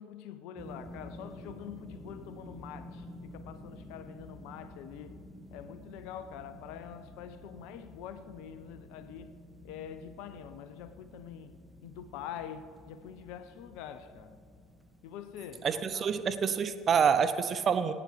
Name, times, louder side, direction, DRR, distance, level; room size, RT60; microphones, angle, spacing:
voice 1, 0.0-5.2 5.5-9.4 9.6-11.6 11.8-14.4 15.0-15.7 15.9-16.1, left 9 dB, 65° left, 0.5 m, -45 dB
sound 1, 0.6-17.1, left 1 dB, 5° right, 1.6 m, -51 dB
voice 2, 15.6-17.9, right 6 dB, 40° right, 0.8 m, -27 dB
19.0 x 9.4 x 3.4 m
hypercardioid pair, 65°, 0 cm